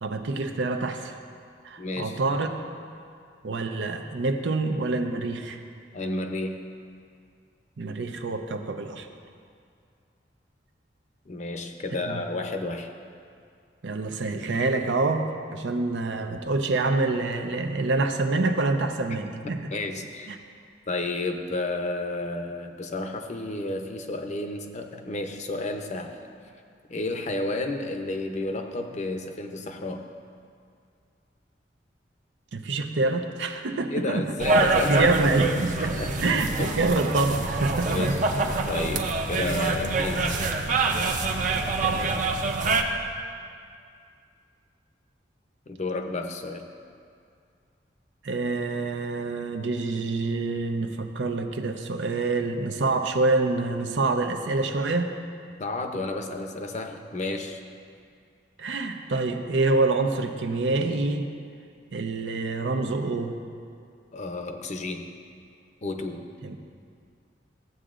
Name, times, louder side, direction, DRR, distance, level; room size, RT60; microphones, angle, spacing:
voice 1, 0.0-1.1 1.6-2.6 3.4-5.6 7.8-9.1 12.1-12.2 13.8-19.7 20.3-20.4 32.5-38.2 41.8-42.2 48.2-55.1 58.6-61.3 61.9-63.4 66.4-66.6, right 3 dB, 90° right, 5 dB, 0.6 m, -26 dB
voice 2, 1.8-2.2 5.9-6.6 11.3-12.9 19.7-20.3 20.9-26.2 26.9-30.1 33.9-35.1 35.8-36.3 36.6-36.9 37.9-38.2 38.7-40.4 45.7-46.7 55.6-57.6 64.1-65.1 65.8-66.3, left 2 dB, 40° left, 5 dB, 0.6 m, -31 dB
sound 1, 34.4-42.8, right 3 dB, 45° right, 0.6 m, -25 dB
14.5 x 7.8 x 2.5 m, 2.3 s
head